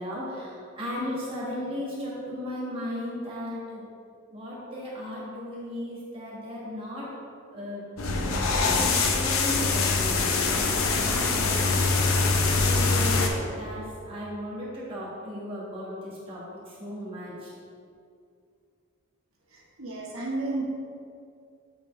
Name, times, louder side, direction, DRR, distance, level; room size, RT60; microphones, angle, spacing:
voice 1, 0.0-3.8 4.3-7.1 7.5-7.9 8.5-12.4 12.7-17.5, left 1 dB, 25° right, -7 dB, 1.4 m, -36 dB
sound 1, 8.0-13.3, left 3 dB, 80° left, 0.7 m, -24 dB
voice 2, 19.5-20.6, right 2 dB, 80° right, -4 dB, 1.1 m, -32 dB
8.1 x 4.3 x 3.2 m, 2.3 s
head